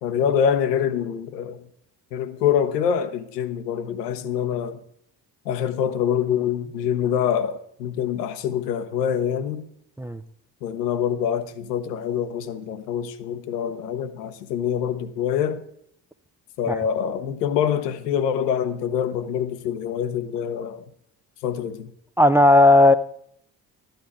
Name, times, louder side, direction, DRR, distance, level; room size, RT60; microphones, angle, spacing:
voice 1, 0.0-1.6 2.1-4.8 5.4-9.7 10.6-15.6 16.6-20.8 21.4-21.9, left 8 dB, 75° left, 0.9 m, -25 dB
voice 2, 22.2-22.9, left 2 dB, 5° right, 0.4 m, -14 dB
12.5 x 9.1 x 4.8 m
figure-of-eight pair, 45°, 48 cm